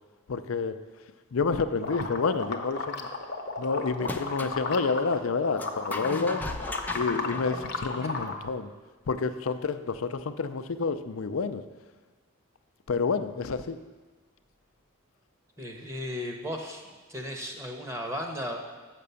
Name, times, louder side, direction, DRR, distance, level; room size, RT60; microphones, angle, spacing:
voice 1, 0.3-0.8 1.3-3.1 3.6-6.4 6.9-8.7 9.1-11.6 12.9-13.8, left 4 dB, 85° left, 11 dB, 0.5 m, -29 dB
sound 1, 1.8-5.1 5.4-8.3, left 3 dB, 50° left, 0.8 m, -34 dB
sound 2, 4.0-4.6 5.6-8.3, left 2 dB, 10° left, 0.3 m, -38 dB
sound 3, 6.4-7.8, left 2 dB, 35° right, 0.9 m, -43 dB
voice 2, 15.6-16.8 17.1-18.6, equal, 15° right, 1 dB, 1.0 m, -35 dB
7.5 x 6.0 x 6.9 m, 1.3 s
head